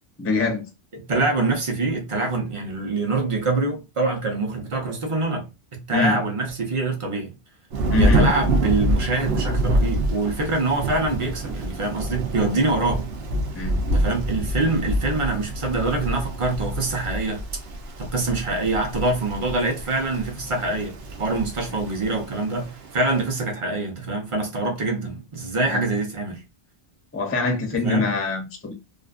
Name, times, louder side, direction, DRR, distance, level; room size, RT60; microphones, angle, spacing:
voice 1, 0.2-0.6 5.9-6.2 7.9-8.3 13.5-13.8 21.6-21.7 25.7-25.8 27.1-28.7, left 4 dB, 20° left, 0.4 m, -24 dB
voice 2, 0.9-7.3 7.9-13.1 13.9-17.5 18.0-26.4 27.7-28.1, right 3 dB, 35° right, 0.7 m, -25 dB
Thunder / Rain, 7.7-23.3, right 1 dB, 80° right, 0.9 m, -27 dB
2.4 x 2.4 x 2.4 m
omnidirectional pair, 1.0 m